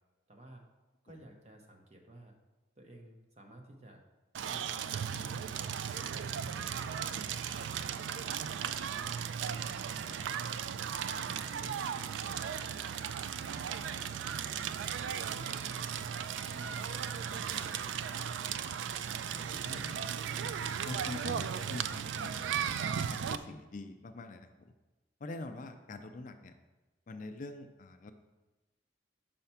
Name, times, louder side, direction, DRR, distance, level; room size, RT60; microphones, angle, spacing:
voice 1, 0.3-0.6 1.0-2.3 2.8-4.0 4.5-5.4 5.9-8.0 8.5-10.7 11.1-13.0 13.5-14.8 15.2-16.1 16.5-18.3, right 1 dB, 35° right, 3 dB, 0.8 m, -53 dB
Crackle, 4.3-23.4, right 8 dB, 80° right, 0.3 m, -36 dB
voice 2, 19.1-20.4 20.8-22.7 23.1-24.7 25.2-26.5 27.1-28.1, left 2 dB, 45° left, 8 dB, 0.4 m, -45 dB
5.7 x 4.3 x 5.7 m, 1.1 s
head